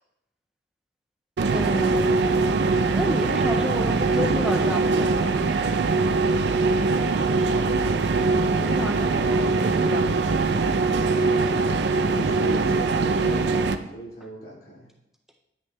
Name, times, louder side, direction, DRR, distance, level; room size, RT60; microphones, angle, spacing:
sound 1, 1.4-13.8, right 3 dB, 75° right, 0.4 m, -22 dB
voice 1, 1.5-2.5 2.9-5.3 8.5-10.7, equal, 5° right, 1 dB, 0.4 m, -31 dB
voice 2, 3.9-5.4 11.9-13.6 13.9-14.9, equal, 55° left, -4 dB, 2.6 m, -37 dB
9.7 x 6.1 x 2.2 m, 0.91 s
head